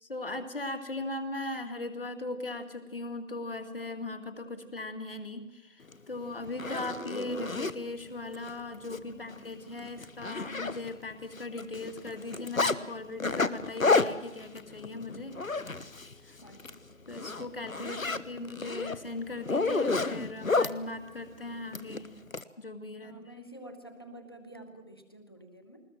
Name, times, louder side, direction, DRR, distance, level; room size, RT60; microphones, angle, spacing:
voice 1, 0.0-15.4 16.2-16.4 17.1-22.1 22.6-23.2, left 2 dB, 40° left, 7 dB, 2.2 m, -38 dB
Zipper (clothing), 5.9-6.0 6.4-7.7 8.3-8.5 8.8-9.0 9.3-9.4 9.8-11.1 11.4-12.8 13.2-16.1 16.5-16.7 17.1-20.7 21.7-22.4, left 3 dB, 75° left, 1.2 m, -30 dB
voice 2, 16.4-16.8 17.9-18.5 23.0-25.8, right 1 dB, 20° left, 5 dB, 1.2 m, -49 dB
20.5 x 20.5 x 7.6 m, 0.98 s
figure-of-eight pair, 165°, 41 cm